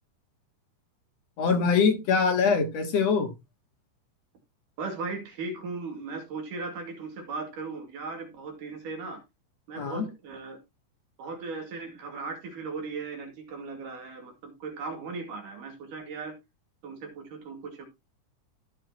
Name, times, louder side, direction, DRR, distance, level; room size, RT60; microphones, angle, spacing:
voice 1, 1.4-3.3 9.8-10.1, left 5 dB, 60° left, 2.5 m, -23 dB
voice 2, 4.8-9.2 9.7-10.6 11.2-16.4 16.8-17.9, right 4 dB, 85° right, 3.9 m, -37 dB
15.0 x 6.7 x 2.9 m
omnidirectional pair, 3.7 m